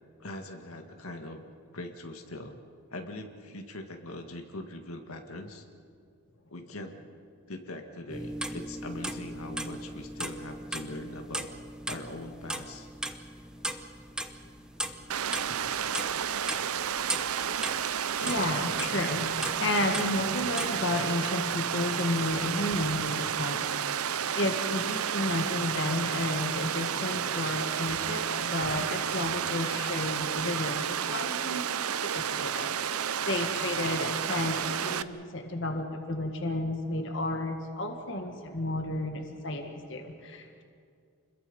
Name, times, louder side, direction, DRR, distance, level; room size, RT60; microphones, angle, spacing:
voice 1, 0.2-1.4 1.7-2.6 2.9-5.6 6.5-7.0 7.5-11.5 11.9-12.9, left 1 dB, 80° left, 4 dB, 1.9 m, -41 dB
sound 1, 8.1-20.8, right 1 dB, 5° right, 0.9 m, -38 dB
Water, 15.1-35.0, right 8 dB, 85° right, 0.7 m, -31 dB
voice 2, 18.2-40.6, left 2 dB, 55° left, 4 dB, 1.9 m, -32 dB
29.5 x 21.5 x 5.5 m, 2.4 s
head